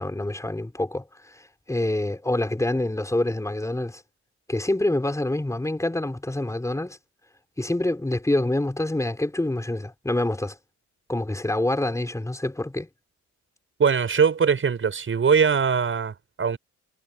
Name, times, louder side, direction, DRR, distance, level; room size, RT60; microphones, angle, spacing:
voice 1, 0.0-4.0 4.5-7.0 7.6-10.6 11.1-12.9, left 1 dB, 10° left, 4.9 m, -26 dB
voice 2, 13.8-16.6, right 6 dB, 40° right, 7.0 m, -21 dB
cardioid pair, 90°, 30 cm